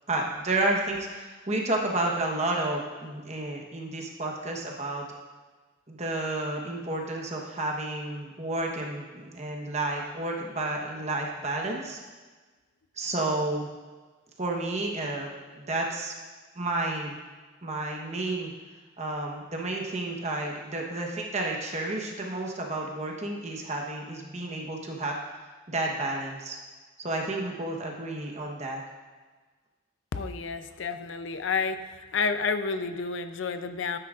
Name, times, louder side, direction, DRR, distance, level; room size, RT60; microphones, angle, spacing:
voice 1, 0.1-5.0 5.9-12.0 13.0-13.7 14.4-15.3 15.5-16.1 16.5-17.2 17.6-18.5 19.0-25.2 25.7-26.6 27.0-28.8, right 2 dB, 35° right, 0 dB, 1.1 m, -31 dB
voice 2, 30.1-34.0, left 5 dB, 65° left, 9 dB, 0.5 m, -30 dB
12.5 x 9.8 x 2.5 m, 1.3 s
head